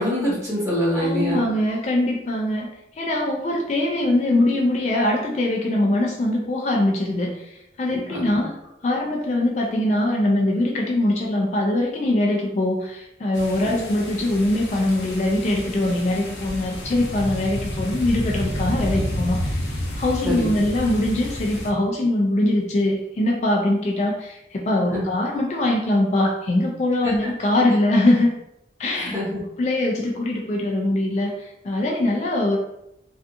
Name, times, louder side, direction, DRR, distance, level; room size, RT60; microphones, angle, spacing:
voice 1, 0.0-1.5 7.9-8.4 13.7-13.8 20.2-20.5 24.9-25.0 27.0-27.1 28.9-29.4, equal, 15° right, -7 dB, 0.9 m, -25 dB
voice 2, 1.0-2.7 2.9-8.6 8.8-19.7 20.0-28.3 28.8-29.1 29.6-32.6, left 1 dB, 40° left, -1 dB, 0.3 m, -22 dB
sound 1, 13.3-21.7, left 1 dB, 80° left, 0.6 m, -30 dB
2.6 x 2.3 x 2.5 m, 0.82 s
head